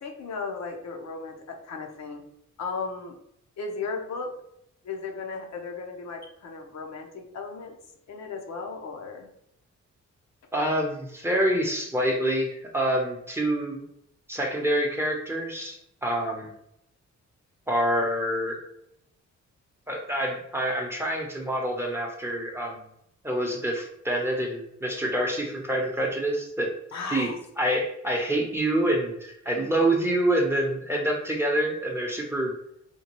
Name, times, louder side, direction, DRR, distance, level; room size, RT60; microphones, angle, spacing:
voice 1, 0.0-2.2 2.6-3.1 3.6-4.4 4.8-7.7 8.1-9.3 26.9-27.4, left 4 dB, 65° left, 2 dB, 0.8 m, -35 dB
voice 2, 10.5-13.8 14.3-16.5 17.7-18.6 19.9-22.8 23.2-26.7 27.1-27.3 27.6-32.5, right 1 dB, 10° right, 0 dB, 0.8 m, -26 dB
4.4 x 2.3 x 3.0 m, 0.75 s
cardioid pair, 100°, 29 cm